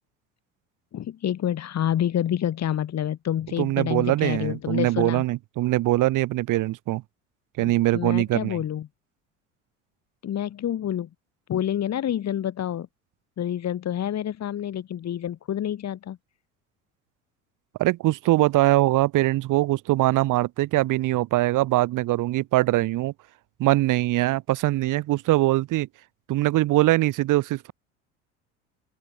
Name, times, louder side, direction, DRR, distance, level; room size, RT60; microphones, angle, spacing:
voice 1, 0.9-5.2 7.6-8.9 10.2-11.1 11.5-12.9 13.4-16.2, left 10 dB, 40° left, 7.6 m, -28 dB
voice 2, 3.6-7.0 7.6-8.6 17.8-23.1 23.6-25.9 26.3-27.7, right 17 dB, 50° right, 2.9 m, -22 dB
open air
figure-of-eight pair, 65°, 39 cm